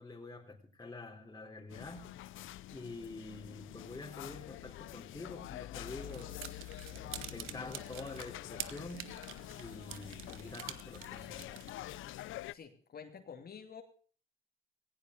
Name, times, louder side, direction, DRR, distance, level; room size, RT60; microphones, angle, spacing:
voice 1, 0.0-2.1 2.7-6.4 6.9-9.2 9.6-11.6, left 2 dB, 20° left, 3.7 m, -47 dB
sound 1, 1.7-12.5, left 15 dB, 80° left, 0.7 m, -46 dB
sound 2, 6.0-11.7, right 12 dB, 90° right, 1.2 m, -48 dB
voice 2, 12.5-13.8, left 6 dB, 50° left, 2.7 m, -49 dB
17.5 x 16.5 x 3.9 m
cardioid pair, 90°, 20 cm